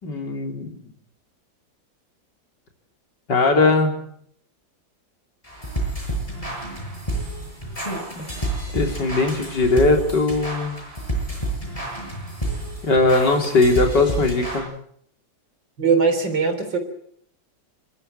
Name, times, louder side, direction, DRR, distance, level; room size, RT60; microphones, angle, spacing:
voice 1, 0.0-0.7 3.3-4.0 8.2-8.3 8.7-10.8 12.8-14.7, left 3 dB, 65° left, 3 dB, 4.1 m, -19 dB
sound 1, 5.4-14.6, right 1 dB, 15° left, 7.2 m, -29 dB
voice 2, 15.8-16.8, right 5 dB, 75° right, 5 dB, 4.2 m, -20 dB
27.0 x 13.0 x 8.9 m, 0.67 s
omnidirectional pair, 2.0 m